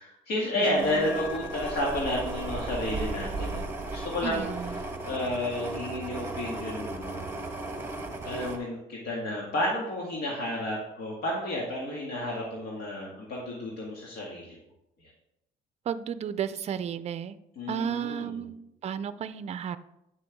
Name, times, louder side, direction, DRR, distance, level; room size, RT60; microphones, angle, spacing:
voice 1, 0.0-4.8 5.1-7.3 8.2-14.6 15.0-15.1 17.6-18.5, left 1 dB, 75° left, -3 dB, 2.1 m, -31 dB
voice 2, 0.6-1.1 4.2-4.7 15.9-17.4 17.7-18.6 18.8-19.8, right 8 dB, 40° right, 13 dB, 0.5 m, -33 dB
sound 1, 0.7-8.6, right 2 dB, 15° right, 1.3 m, -35 dB
Piano, 1.0-2.9, left 9 dB, 35° left, 0.9 m, -46 dB
9.1 x 6.7 x 3.6 m, 0.85 s
cardioid pair, 110°, 17 cm